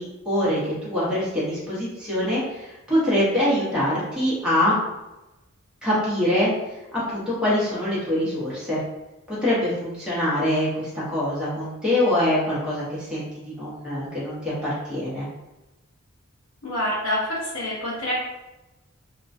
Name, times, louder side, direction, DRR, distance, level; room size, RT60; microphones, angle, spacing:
voice 1, 0.0-4.8 5.8-6.5 7.1-8.8 9.3-15.2, left 1 dB, 5° right, -9 dB, 0.7 m, -24 dB
voice 2, 16.6-18.1, left 1 dB, 70° left, -6 dB, 0.7 m, -27 dB
2.4 x 2.1 x 2.4 m, 1.0 s
head